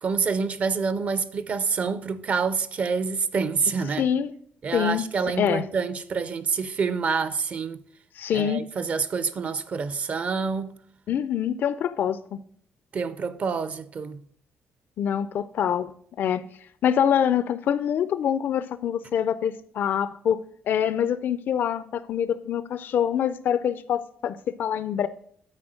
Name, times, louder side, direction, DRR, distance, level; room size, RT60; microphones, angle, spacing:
voice 1, 0.0-4.1 4.6-7.8 8.3-10.7 12.9-14.2, right 5 dB, 40° right, 0.5 m, -27 dB
voice 2, 4.0-4.3 4.7-5.0 5.4-5.6 8.2-8.6 11.1-12.4 15.0-16.4 16.8-20.4 20.7-25.1, left 9 dB, 55° left, 0.4 m, -25 dB
9.6 x 4.3 x 6.3 m
cardioid pair, 145°, 4 cm